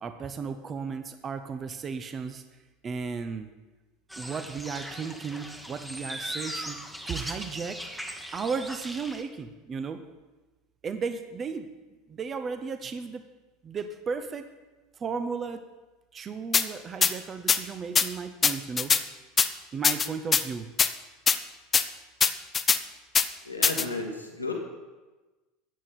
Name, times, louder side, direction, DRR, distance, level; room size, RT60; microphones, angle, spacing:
voice 1, 0.0-2.4 2.8-3.5 4.2-6.8 7.1-7.8 8.3-10.0 10.8-11.7 12.1-13.2 13.6-14.4 15.0-15.6 16.1-18.9 19.7-20.7, right 5 dB, 30° right, 9 dB, 0.8 m, -34 dB
sound 1, 4.1-9.2, equal, 5° right, 1.2 m, -39 dB
sound 2, 16.5-16.6 17.0-17.1 17.5-17.6 17.9-18.1 18.4-19.0 19.4-19.5 19.8-20.4 20.8-20.9 21.3-21.4 21.7-21.8 22.2-22.8 23.1-23.3 23.6-23.8, left 6 dB, 25° left, 0.6 m, -21 dB
voice 2, 23.4-24.5, left 3 dB, 90° left, 1 dB, 1.7 m, -33 dB
13.5 x 8.8 x 4.3 m, 1.2 s
figure-of-eight pair, 75°, 0 cm